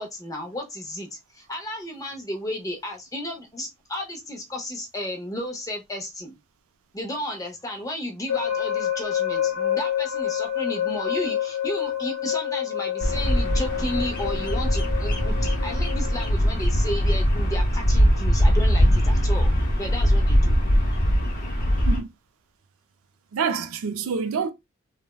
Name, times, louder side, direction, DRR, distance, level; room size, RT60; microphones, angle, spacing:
voice 1, 0.0-6.4 6.9-19.5 19.8-20.6, left 1 dB, 15° left, 0.6 m, -33 dB
sound 1, 8.3-16.3, left 10 dB, 80° left, 0.7 m, -28 dB
Bird vocalization bird call bird song, 13.0-22.0, equal, 40° left, 0.9 m, -21 dB
voice 2, 23.3-24.5, right 5 dB, 70° right, 0.4 m, -26 dB
3.2 x 2.1 x 2.2 m
head